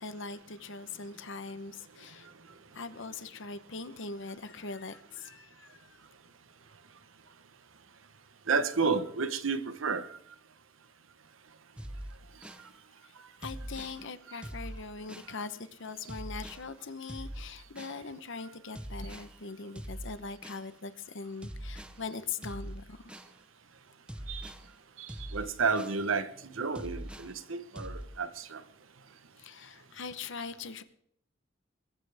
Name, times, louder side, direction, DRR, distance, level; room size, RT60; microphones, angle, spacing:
voice 1, 0.0-2.3 2.7-6.0 13.0-13.1 13.4-23.2 29.4-30.8, left 4 dB, 65° left, 0.9 m, -41 dB
voice 2, 8.5-10.1 24.3-24.5 25.3-26.3 26.6-28.6, right 4 dB, 80° right, 1.1 m, -31 dB
sound 1, 11.8-12.7 13.4-14.0 14.4-15.3 16.1-16.7 17.1-18.0 18.8-19.3 19.8-20.7 21.4-22.0 22.4-23.3 24.1-24.7 25.1-26.0 26.8-27.3 27.8-28.1, equal, 5° right, 0.7 m, -42 dB
21.0 x 14.5 x 3.5 m
head